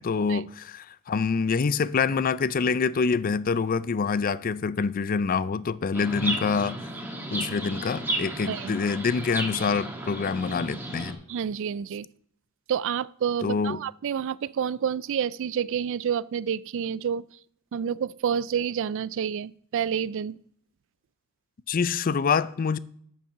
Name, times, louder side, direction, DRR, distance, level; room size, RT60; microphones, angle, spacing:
voice 1, 0.0-6.8 7.3-11.2 13.4-13.8 21.7-22.8, left 5 dB, 40° left, 0.4 m, -26 dB
Chirp tweet, 5.9-11.1, right 1 dB, 10° right, 1.5 m, -33 dB
voice 2, 11.3-12.1 12.7-17.2 17.7-20.4, right 8 dB, 60° right, 0.3 m, -29 dB
8.2 x 7.4 x 5.5 m
head